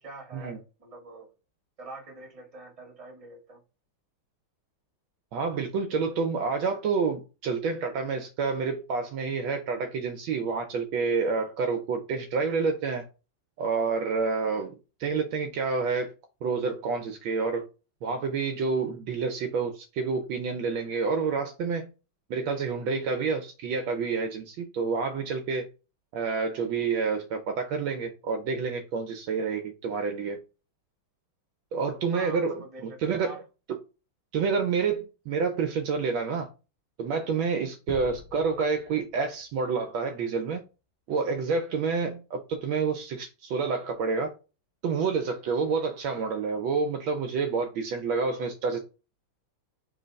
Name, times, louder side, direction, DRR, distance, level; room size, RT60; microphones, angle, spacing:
voice 1, 0.0-1.3 1.8-3.6 32.1-33.4 37.9-38.0 45.8-45.9, right 2 dB, 15° right, 1.6 m, -45 dB
voice 2, 5.3-13.1 13.6-14.7 15.0-16.1 16.4-17.7 18.0-21.9 22.3-25.7 26.1-30.4 31.7-33.4 34.3-36.5 37.0-40.6 41.1-44.3 44.8-48.8, right 5 dB, 75° right, 1.4 m, -28 dB
sound 1, 37.9-40.6, left 4 dB, 75° left, 1.4 m, -46 dB
4.0 x 3.2 x 4.0 m
omnidirectional pair, 2.3 m